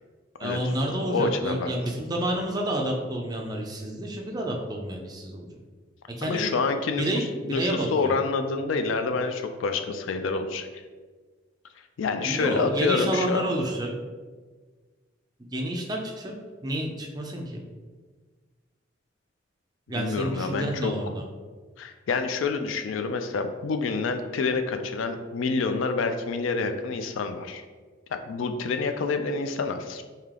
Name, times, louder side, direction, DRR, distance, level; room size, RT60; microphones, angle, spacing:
voice 1, 0.4-5.5 6.1-6.5 6.9-8.2 12.2-13.9 15.5-16.3 16.6-17.6 19.9-21.2, right 1 dB, 20° right, 0 dB, 0.4 m, -29 dB
voice 2, 1.0-1.7 6.2-7.0 7.5-10.7 12.0-13.4 19.9-20.9 21.8-27.6 28.1-30.0, left 4 dB, 75° left, 7 dB, 0.3 m, -27 dB
3.3 x 2.8 x 3.6 m, 1.4 s
head